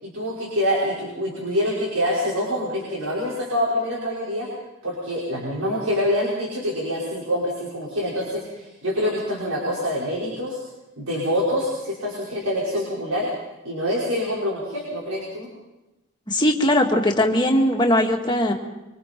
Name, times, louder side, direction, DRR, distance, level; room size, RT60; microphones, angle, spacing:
voice 1, 0.0-4.5 4.8-10.6 11.0-13.3 13.6-15.5, equal, 85° right, -5 dB, 5.6 m, -25 dB
voice 2, 16.3-18.5, left 1 dB, 20° left, 1 dB, 2.0 m, -19 dB
25.5 x 25.0 x 4.6 m, 1.0 s
head